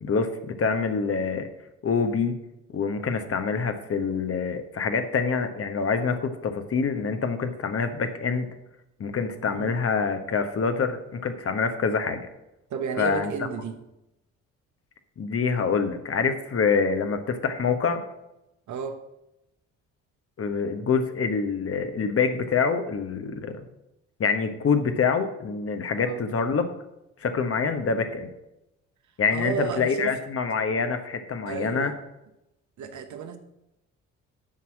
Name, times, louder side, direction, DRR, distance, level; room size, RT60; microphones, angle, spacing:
voice 1, 0.0-1.5 1.8-2.4 2.7-8.5 9.0-12.2 13.0-13.3 15.2-18.0 20.4-23.7 24.2-26.7 27.2-28.3 29.2-31.9, left 5 dB, 35° left, 8 dB, 1.2 m, -26 dB
voice 2, 12.7-13.8 18.7-19.0 26.0-26.2 29.3-30.2 31.5-32.0 32.8-33.4, right 6 dB, 50° right, 7 dB, 1.1 m, -32 dB
7.6 x 6.0 x 7.5 m, 0.89 s
figure-of-eight pair, 45°, 38 cm